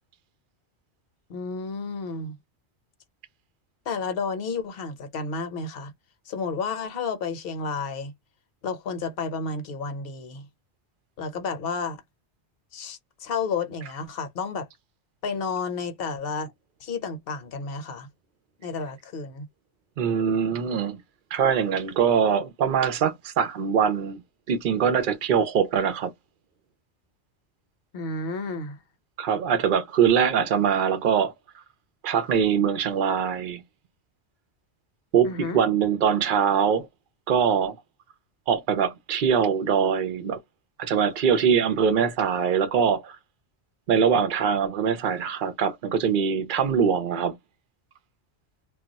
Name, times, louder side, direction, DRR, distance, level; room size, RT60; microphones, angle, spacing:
voice 1, 1.3-2.4 3.9-5.9 6.3-8.1 8.6-10.5 11.2-12.0 12.7-14.7 15.2-16.5 16.8-18.1 18.6-19.5 27.9-28.8 35.2-35.6, left 4 dB, 60° left, 0.9 m, -31 dB
voice 2, 20.0-21.0 21.3-24.2 24.5-26.1 29.2-31.3 32.0-33.6 35.1-36.9 37.3-37.8 38.5-40.4 40.8-43.2 43.9-47.4, right 7 dB, 55° right, 0.7 m, -23 dB
2.3 x 2.2 x 3.9 m
omnidirectional pair, 1.2 m